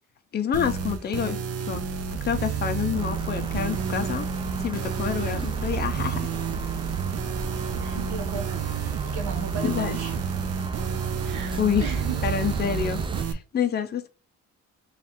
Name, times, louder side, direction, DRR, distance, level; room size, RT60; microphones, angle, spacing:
voice 1, 0.3-1.8 2.1-4.3 4.6-6.3 9.6-10.0 11.5-11.9 12.2-14.1, left 8 dB, 35° left, 0.6 m, -28 dB
sound 1, 0.5-13.3, right 7 dB, 55° right, 0.7 m, -30 dB
sound 2, 3.0-13.2, right 4 dB, 15° right, 0.4 m, -35 dB
voice 2, 7.8-10.1 11.2-12.2, right 5 dB, 75° right, 1.2 m, -36 dB
3.1 x 2.5 x 4.2 m
cardioid pair, 90°, 30 cm